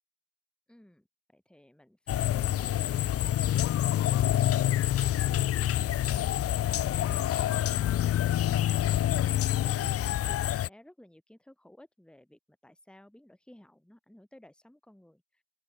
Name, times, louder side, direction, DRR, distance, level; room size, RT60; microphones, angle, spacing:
voice 1, 0.7-8.6 9.3-15.4, left 1 dB, ahead, 2.3 m, -56 dB
sound 1, 2.1-10.7, left 12 dB, 35° left, 0.4 m, -27 dB
open air
supercardioid pair, 85°, 43 cm